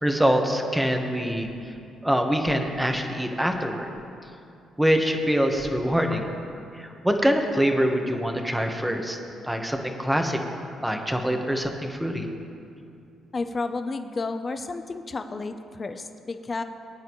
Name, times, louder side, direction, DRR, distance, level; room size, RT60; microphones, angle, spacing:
voice 1, 0.0-1.5 2.0-3.9 4.8-6.3 7.0-9.2 9.5-10.4 10.8-12.2, equal, 5° right, 3 dB, 1.4 m, -24 dB
voice 2, 13.3-16.6, left 3 dB, 35° left, 8 dB, 0.7 m, -31 dB
22.5 x 9.4 x 3.2 m, 2.6 s
cardioid pair, 90°, 0 cm